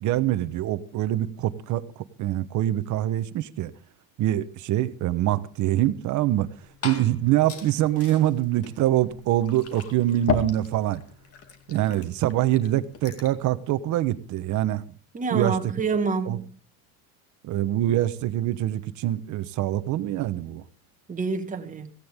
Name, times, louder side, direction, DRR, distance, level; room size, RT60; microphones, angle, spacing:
voice 1, 0.0-1.8 2.2-3.7 4.2-6.5 6.8-11.0 11.7-14.8 15.3-15.5 16.3-16.4 17.4-20.6, right 13 dB, 40° right, 1.1 m, -24 dB
Liquid, 6.3-13.4, left 5 dB, 35° left, 2.6 m, -36 dB
voice 2, 15.1-16.6 21.1-21.9, right 4 dB, 20° right, 1.8 m, -27 dB
17.0 x 16.5 x 3.6 m
cardioid pair, 145°, 43 cm